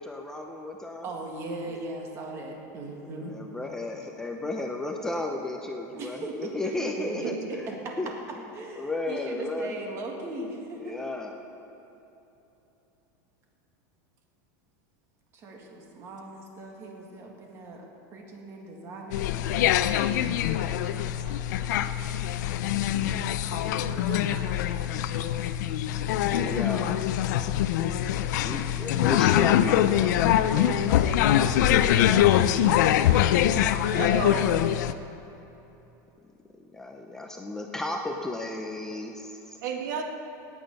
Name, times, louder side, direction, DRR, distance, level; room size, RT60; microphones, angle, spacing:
voice 1, 0.0-1.1 1.7-1.8 3.2-7.7 8.0-8.1 8.8-9.8 10.8-11.3 26.2-27.0 28.4-31.6 36.7-39.6, left 2 dB, 5° left, 2 dB, 0.6 m, -34 dB
voice 2, 1.0-3.3 5.9-7.9 8.5-11.0 15.3-19.8 20.9-21.8, right 2 dB, 25° right, 1 dB, 1.8 m, -38 dB
sound 1, 19.1-34.9, left 11 dB, 70° left, 0.5 m, -24 dB
voice 3, 23.5-24.5 33.9-34.5 39.6-40.0, right 6 dB, 75° right, 4 dB, 1.5 m, -33 dB
18.0 x 9.1 x 5.4 m, 3.0 s
supercardioid pair, 165°, 10 cm